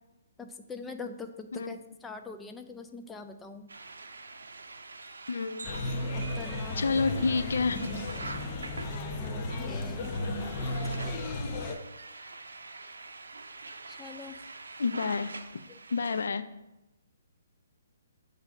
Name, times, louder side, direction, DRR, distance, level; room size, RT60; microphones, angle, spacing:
voice 1, 0.4-3.7 6.1-7.0 9.2-10.1 14.0-14.3, left 4 dB, 10° left, 5 dB, 0.4 m, -43 dB
voice 2, 1.5-1.8 5.3-5.7 6.8-7.9 11.1-11.6 14.8-15.6 15.9-16.4, left 4 dB, 75° left, 11 dB, 0.4 m, -30 dB
sound 1, 3.7-16.3, right 3 dB, 85° right, 0.5 m, -45 dB
sound 2, 5.6-11.8, left 2 dB, 30° left, 0.8 m, -34 dB
8.0 x 2.7 x 5.0 m, 0.98 s
hypercardioid pair, 145°, 0 cm